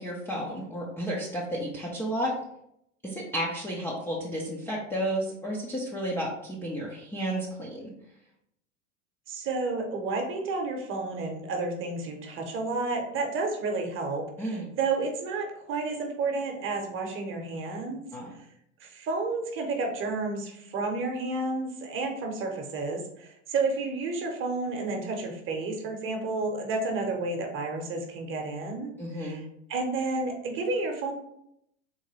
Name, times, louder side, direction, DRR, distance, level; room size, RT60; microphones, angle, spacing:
voice 1, 0.0-2.3 3.0-7.9 14.4-14.7 18.1-18.3 29.0-29.4, right 1 dB, 5° left, -5 dB, 0.3 m, -32 dB
voice 2, 9.3-18.1 18.8-28.9 29.2-29.4 29.7-31.1, right 3 dB, 30° right, 2 dB, 0.8 m, -31 dB
3.8 x 2.2 x 3.1 m, 0.75 s
hypercardioid pair, 115°, 39 cm